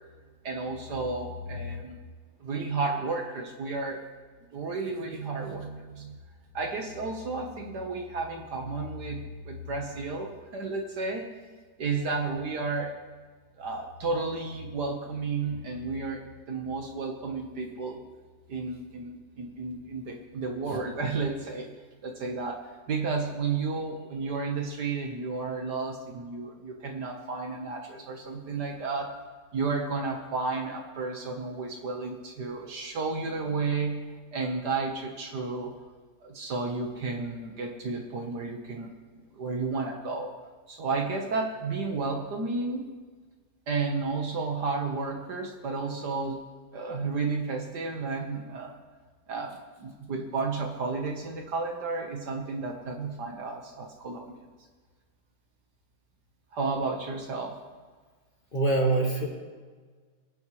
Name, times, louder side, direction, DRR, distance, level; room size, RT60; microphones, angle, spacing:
voice 1, 0.4-2.0 2.4-4.0 4.5-6.2 6.5-11.3 11.8-12.9 13.6-18.0 18.5-21.7 22.0-29.2 29.5-35.8 36.2-38.9 39.3-40.3 40.7-42.9 43.7-46.4 46.7-48.7 49.3-54.4 56.5-57.6, right 4 dB, 65° right, 2 dB, 1.8 m, -32 dB
voice 2, 58.5-59.3, right 2 dB, 30° left, -1 dB, 1.9 m, -24 dB
23.5 x 8.8 x 3.2 m, 1.5 s
omnidirectional pair, 2.0 m